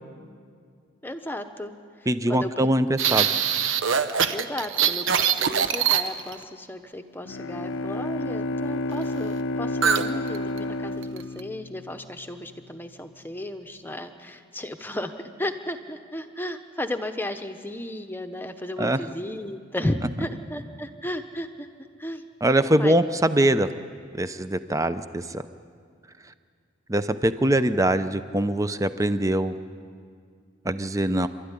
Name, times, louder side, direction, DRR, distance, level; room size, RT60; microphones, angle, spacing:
voice 1, 1.0-2.7 4.3-21.7 22.0-22.3 22.7-23.0, left 1 dB, 10° left, 7 dB, 1.0 m, -34 dB
voice 2, 2.1-3.3 18.8-19.0 22.4-23.7 24.1-25.4 26.9-29.6 30.6-31.3, right 1 dB, 15° right, 12 dB, 0.6 m, -23 dB
sound 1, 3.0-6.4 9.8-10.1 10.3-10.6 11.0-11.4, right 8 dB, 65° right, 1.0 m, -23 dB
Bowed string instrument, 7.3-12.4, left 2 dB, 65° left, 0.5 m, -30 dB
27.5 x 13.0 x 9.9 m, 2.2 s
head